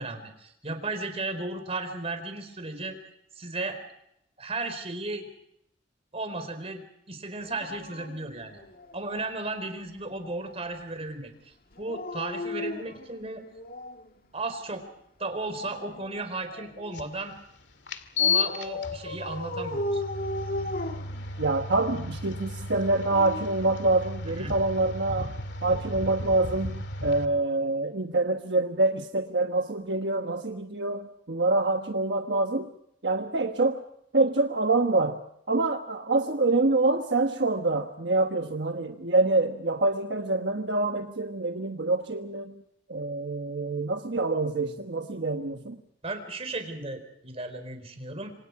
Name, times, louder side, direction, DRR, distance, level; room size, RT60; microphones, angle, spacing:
voice 1, 0.0-3.0 3.4-3.8 4.4-5.3 6.1-8.6 8.9-13.4 14.3-14.8 15.2-17.3 18.2-20.0 24.4-24.5 46.0-48.3, right 2 dB, 35° right, 8 dB, 4.3 m, -35 dB
Dog, 7.4-9.3 11.7-14.1 15.4-17.0 18.2-21.7 22.7-24.4 25.6-25.8, left 1 dB, 55° left, 2.1 m, -37 dB
sound 1, 16.9-17.0 17.9-27.3, left 4 dB, 75° left, 2.2 m, -33 dB
voice 2, 21.4-25.3 25.6-32.7 33.0-33.8 34.1-35.2 35.5-42.6 42.9-45.8, right 2 dB, 70° right, 5 dB, 1.3 m, -26 dB
27.0 x 26.5 x 4.8 m, 0.73 s
head